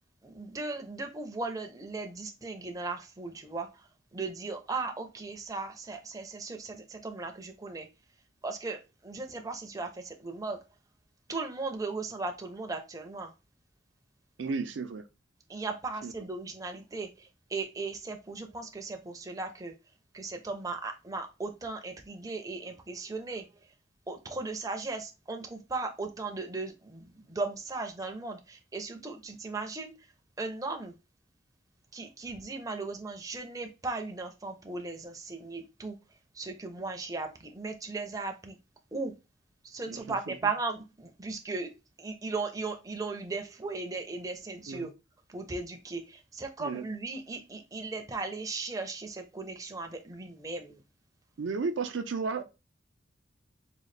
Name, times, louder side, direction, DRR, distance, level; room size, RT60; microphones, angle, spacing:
voice 1, 0.2-7.9 8.4-10.6 11.3-13.3 15.5-19.7 20.1-23.5 24.1-29.9 30.4-31.0 31.9-36.0 36.3-38.6 38.9-39.1 39.6-44.9 45.3-50.8, right 3 dB, 20° right, 0.5 m, -37 dB
voice 2, 14.4-15.1 16.0-16.1 39.9-40.3 44.7-44.9 46.6-46.8 51.4-52.4, right 4 dB, 70° right, 0.4 m, -33 dB
3.8 x 2.3 x 3.2 m
head